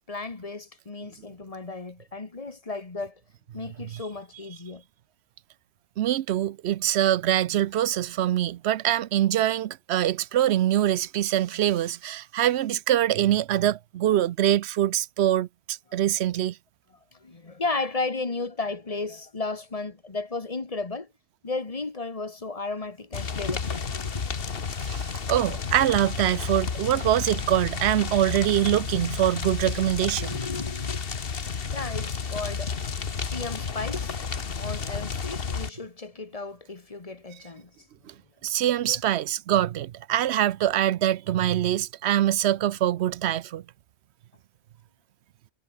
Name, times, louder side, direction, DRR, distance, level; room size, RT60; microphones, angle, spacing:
voice 1, 0.1-3.2 3.5-4.8 14.1-14.2 17.1-21.1 21.4-24.1 30.2-31.0 31.3-32.8 33.2-34.2 34.6-37.9 38.9-39.0, left 3 dB, 35° left, 1.5 m, -34 dB
voice 2, 6.0-16.6 24.8-30.3 38.1-38.2 38.4-43.6, right 12 dB, 80° right, 0.9 m, -24 dB
sound 1, 23.1-35.7, left 5 dB, 60° left, 1.5 m, -31 dB
omnidirectional pair, 1.1 m